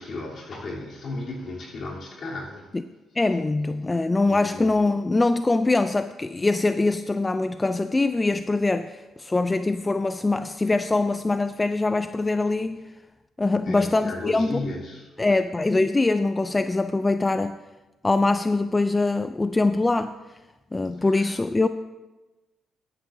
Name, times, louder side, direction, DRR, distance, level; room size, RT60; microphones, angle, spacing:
voice 1, 0.0-2.7 3.9-4.0 4.3-4.8 13.6-15.1 21.1-21.3, left 2 dB, 55° left, -4 dB, 3.2 m, -35 dB
voice 2, 3.2-12.8 13.4-14.6 15.2-17.6 18.0-20.1 20.7-21.7, left 2 dB, 20° left, 10 dB, 0.3 m, -23 dB
13.0 x 10.0 x 2.7 m, 1.1 s
cardioid pair, 90°, 0 cm